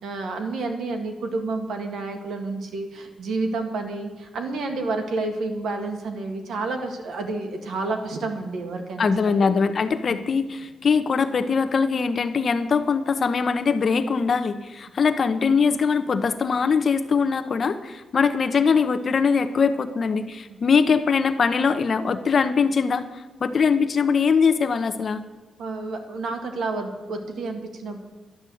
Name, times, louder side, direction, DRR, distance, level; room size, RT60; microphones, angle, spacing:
voice 1, 0.0-9.6 10.1-10.2 20.5-20.6 25.6-28.0, right 3 dB, 85° right, 4 dB, 1.9 m, -30 dB
voice 2, 9.0-25.2, left 5 dB, 40° left, 10 dB, 0.8 m, -22 dB
11.5 x 10.0 x 7.8 m, 1.2 s
wide cardioid pair, 155°, 0 cm